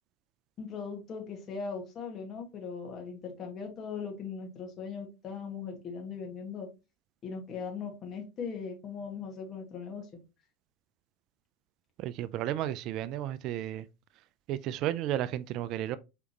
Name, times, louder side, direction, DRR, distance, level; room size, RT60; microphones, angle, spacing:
voice 1, 0.6-6.7 7.2-10.1, left 5 dB, 40° left, 1.7 m, -39 dB
voice 2, 12.0-13.9 14.5-16.0, right 12 dB, 55° right, 0.3 m, -33 dB
4.9 x 3.4 x 2.9 m
hypercardioid pair, 90°, 0 cm